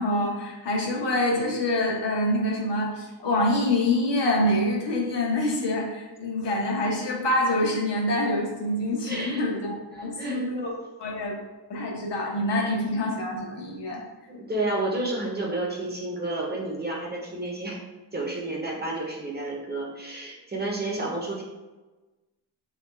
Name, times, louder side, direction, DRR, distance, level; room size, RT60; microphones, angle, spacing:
voice 1, 0.0-10.7 11.0-11.4 11.7-14.0, left 1 dB, 75° left, -3 dB, 1.1 m, -26 dB
voice 2, 9.0-9.4 9.9-10.7 12.5-12.7 14.3-17.8 18.1-21.4, right 2 dB, 25° right, -2 dB, 0.6 m, -31 dB
3.6 x 2.3 x 4.4 m, 1.2 s
wide cardioid pair, 155°, 42 cm